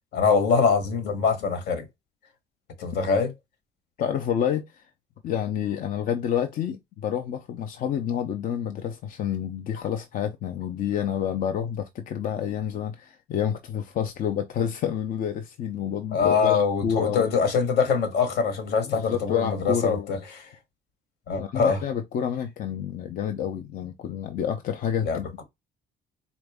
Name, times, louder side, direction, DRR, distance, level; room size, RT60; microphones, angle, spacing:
voice 1, 0.1-1.8 2.8-3.3 16.1-20.2 21.3-21.8 25.0-25.4, left 5 dB, 75° left, 1.2 m, -23 dB
voice 2, 4.0-4.8 5.2-17.2 18.9-20.1 21.4-25.3, left 9 dB, 55° left, 0.5 m, -29 dB
4.0 x 2.5 x 3.4 m
cardioid pair, 110°, 17 cm